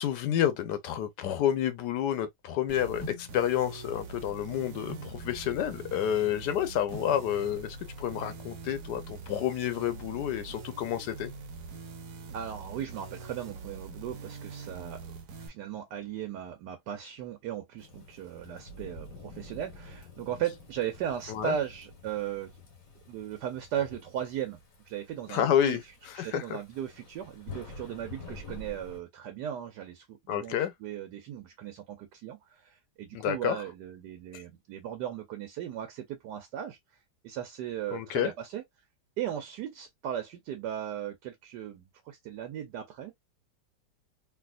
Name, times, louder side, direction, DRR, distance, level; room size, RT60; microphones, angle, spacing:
voice 1, 0.0-11.3 21.3-21.5 25.3-25.8 26.2-26.6 30.3-30.7 33.1-33.6 34.3-34.4 37.9-38.3, left 10 dB, 85° left, 1.3 m, -29 dB
sound 1, 2.7-15.5, right 4 dB, 60° right, 1.0 m, -44 dB
sound 2, 3.0-9.1, left 1 dB, 10° left, 0.8 m, -49 dB
voice 2, 12.3-22.5 23.1-24.6 24.9-36.8 37.2-38.6 39.2-43.1, right 10 dB, 85° right, 1.3 m, -37 dB
Thunderstorm / Rain, 17.8-29.0, left 3 dB, 60° left, 1.7 m, -48 dB
3.3 x 2.7 x 2.4 m
omnidirectional pair, 1.8 m